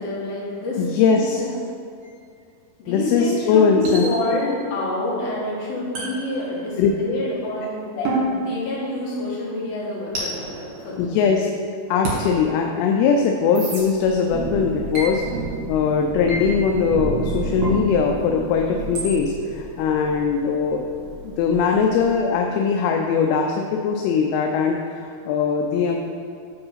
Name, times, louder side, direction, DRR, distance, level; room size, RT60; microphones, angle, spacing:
voice 1, 0.0-1.5 2.8-10.4 10.8-11.2, left 2 dB, 65° left, -7 dB, 3.4 m, -27 dB
voice 2, 0.8-1.4 2.9-4.0 6.8-6.9 8.0-8.1 11.0-11.5 11.9-15.2 15.7-20.9 21.2-26.1, left 6 dB, 85° left, 2 dB, 2.4 m, -20 dB
sound 1, 2.0-2.2 3.9-4.6 6.0-7.0 8.1-9.3 10.1-11.5 12.1-12.2 13.6-13.8 14.9-15.1 16.3-16.5 17.6-17.8 19.0-19.1, right 2 dB, 60° right, 3.3 m, -30 dB
Thunder / Rain, 13.7-22.3, right 3 dB, 90° right, 2.8 m, -32 dB
7.9 x 3.9 x 5.6 m, 2.4 s
omnidirectional pair, 4.7 m